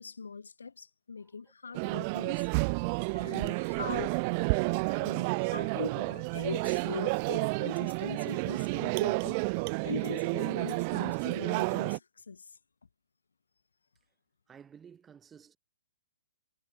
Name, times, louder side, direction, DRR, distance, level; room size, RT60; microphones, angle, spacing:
voice 1, 0.0-2.5 3.1-4.2 4.9-9.4 9.8-12.6, left 5 dB, 75° left, 0.4 m, -41 dB
sound 1, 1.7-12.0, right 32 dB, 35° right, 0.3 m, -30 dB
voice 2, 14.5-15.6, right 7 dB, 15° right, 1.8 m, -54 dB
figure-of-eight pair, 120°, 0 cm